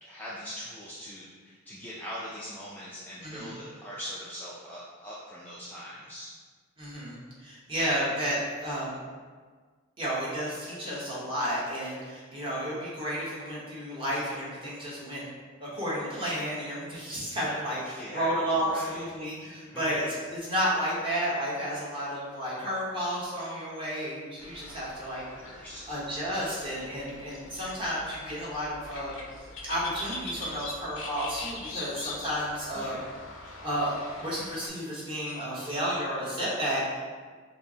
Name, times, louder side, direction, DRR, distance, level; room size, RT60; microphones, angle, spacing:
voice 1, 0.0-6.3 17.9-18.3 18.6-19.1 19.3-19.8 24.7-24.8 25.2-26.0 32.7-33.0, equal, 10° left, -8 dB, 0.3 m, -42 dB
voice 2, 3.2-3.5 6.8-9.0 10.0-15.2 15.6-25.2 25.5-29.1 29.6-33.0 33.6-37.0, equal, 25° right, -8 dB, 1.0 m, -32 dB
sound 1, 24.4-34.7, left 2 dB, 65° left, 0.5 m, -42 dB
5.3 x 2.0 x 2.7 m, 1.5 s
head